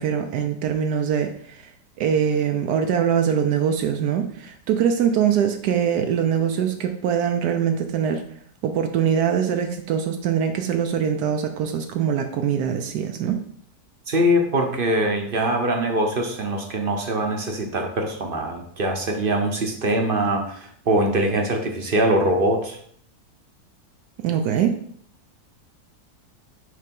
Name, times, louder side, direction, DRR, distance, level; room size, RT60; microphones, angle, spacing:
voice 1, 0.0-1.7 2.0-8.2 8.6-13.4 24.2-24.7, right 8 dB, 80° right, 5 dB, 1.2 m, -23 dB
voice 2, 14.1-22.8, right 1 dB, 45° right, 3 dB, 0.8 m, -23 dB
6.5 x 3.3 x 5.2 m, 0.63 s
omnidirectional pair, 1.7 m